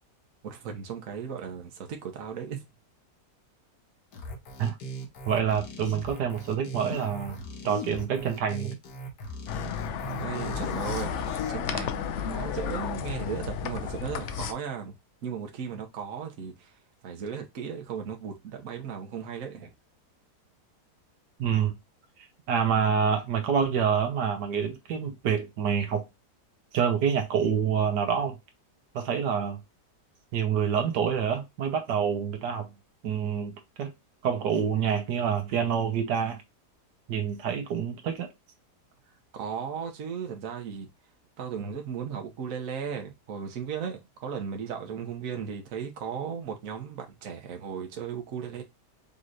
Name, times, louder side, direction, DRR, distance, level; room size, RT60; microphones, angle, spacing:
voice 1, 0.4-2.6 9.9-11.2 11.5-14.9 15.2-16.7 17.0-19.7 39.3-40.9 41.4-48.6, right 7 dB, 60° right, 1.3 m, -36 dB
sound 1, 4.1-11.5, equal, 80° left, 1.7 m, -39 dB
voice 2, 5.3-8.7 21.4-21.8 22.5-26.0 26.7-28.3 28.9-29.6 30.3-32.7 33.0-33.5 33.8-33.9 34.2-36.4 37.1-38.3, right 7 dB, 90° right, 1.5 m, -27 dB
sound 2, 9.5-14.5, left 8 dB, 65° left, 0.7 m, -33 dB
5.4 x 3.1 x 2.5 m
omnidirectional pair, 1.8 m